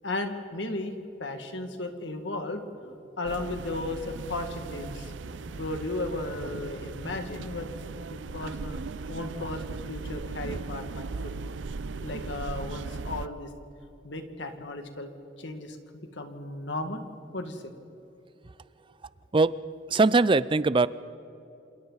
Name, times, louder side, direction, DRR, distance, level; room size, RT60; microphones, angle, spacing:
voice 1, 0.0-2.6 3.2-5.1 5.6-7.7 8.3-8.8 9.1-11.3 12.0-13.5 14.0-15.8 16.1-17.0 17.3-17.7, left 2 dB, 70° left, 5 dB, 2.0 m, -35 dB
sound 1, 3.2-13.3, right 3 dB, 75° right, 0.6 m, -38 dB
voice 2, 19.9-20.9, right 3 dB, 25° right, 17 dB, 0.4 m, -21 dB
28.0 x 27.0 x 4.1 m, 2.8 s
head